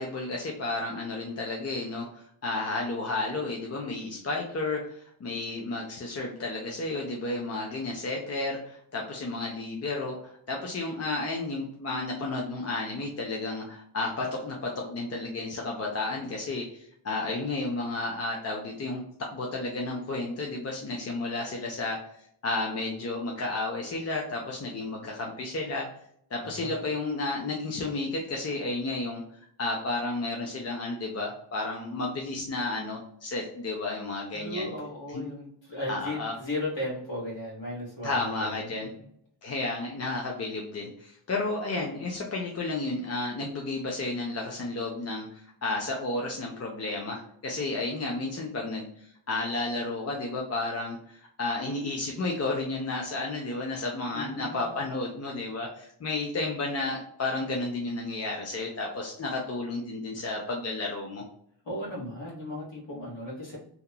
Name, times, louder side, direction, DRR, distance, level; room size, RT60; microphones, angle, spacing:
voice 1, 0.0-22.0 22.4-25.9 26.3-29.2 29.6-34.7 35.1-35.2 35.9-36.3 38.0-38.9 39.4-48.9 49.3-61.2, left 2 dB, 35° left, -1 dB, 0.4 m, -32 dB
voice 2, 26.4-26.9 34.3-39.1 54.1-54.8 61.6-63.6, left 1 dB, 65° left, -6 dB, 1.5 m, -36 dB
2.9 x 2.4 x 2.2 m, 0.69 s
wide cardioid pair, 140°, 47 cm